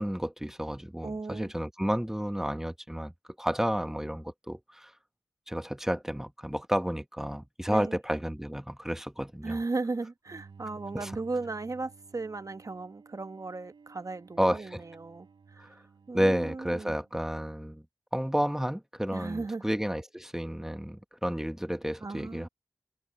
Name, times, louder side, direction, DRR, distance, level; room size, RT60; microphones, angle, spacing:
voice 1, 0.0-3.1 3.4-4.9 5.5-9.6 10.9-11.1 14.4-14.8 15.6-15.7 16.1-17.8 18.1-22.5, equal, 5° right, 1.1 m, -31 dB
voice 2, 1.0-1.5 7.7-8.0 9.4-15.8 16.1-16.9 19.1-19.6 22.0-22.5, right 3 dB, 45° right, 1.0 m, -36 dB
Bowed string instrument, 10.3-17.5, right 5 dB, 85° right, 3.1 m, -54 dB
cardioid pair, 50°, 8 cm